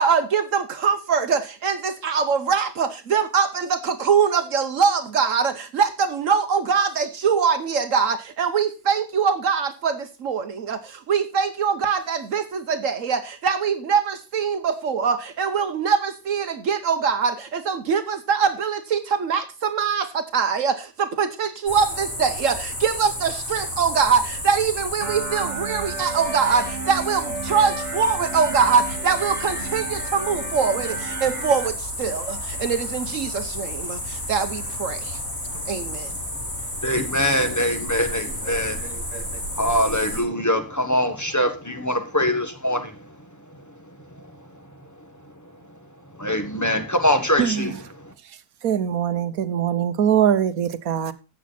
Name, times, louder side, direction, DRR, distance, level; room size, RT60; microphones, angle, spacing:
voice 1, 0.0-35.2 35.7-36.1 38.4-39.2 39.7-39.8, right 6 dB, 65° right, 1.3 m, -23 dB
sound 1, 21.7-40.2, left 1 dB, 75° left, 6.5 m, -32 dB
sound 2, 25.0-31.7, right 4 dB, 45° right, 2.2 m, -33 dB
voice 2, 36.8-38.8 39.6-42.9 46.2-47.8, left 1 dB, 15° left, 1.4 m, -23 dB
voice 3, 48.6-51.1, right 9 dB, 90° right, 1.4 m, -22 dB
13.5 x 8.3 x 4.2 m
omnidirectional pair, 1.5 m